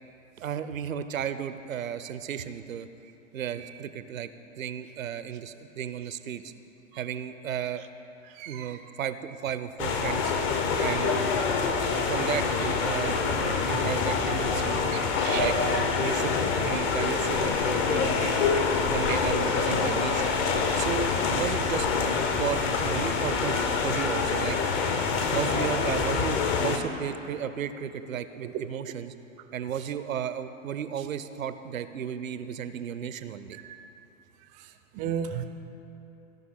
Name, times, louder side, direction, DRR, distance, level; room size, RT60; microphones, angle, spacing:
voice 1, 0.4-2.9 3.3-4.3 4.6-6.5 6.9-7.8 8.5-10.3 10.8-11.3 12.0-14.8 15.3-18.3 18.9-20.4 20.7-21.9 22.3-24.6 25.3-29.1 29.5-33.6, right 8 dB, 85° right, 12 dB, 0.6 m, -34 dB
voice 2, 8.4-8.7 11.8-12.0 14.9-15.5 33.6-33.8 34.9-35.4, right 9 dB, 20° right, 8 dB, 0.4 m, -34 dB
sound 1, 9.8-26.8, left 5 dB, 30° left, 0.7 m, -26 dB
15.5 x 5.6 x 3.7 m, 2.9 s
hypercardioid pair, 115°, 39 cm